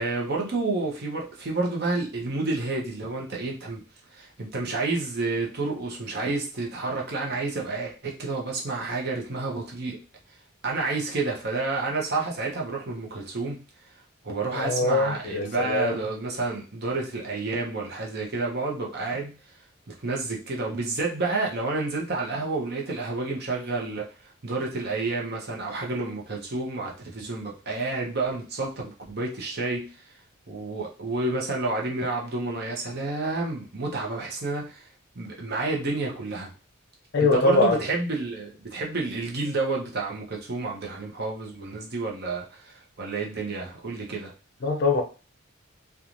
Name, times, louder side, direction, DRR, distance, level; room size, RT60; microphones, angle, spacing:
voice 1, 0.0-3.8 4.1-10.0 10.6-13.6 14.2-19.4 19.9-24.1 24.4-29.9 30.5-34.9 35.2-36.5 37.2-44.3, right 3 dB, 50° right, 0.7 m, -30 dB
voice 2, 14.5-16.1 37.1-37.8 44.6-45.0, left 3 dB, 55° left, 0.5 m, -23 dB
3.0 x 2.3 x 2.5 m
head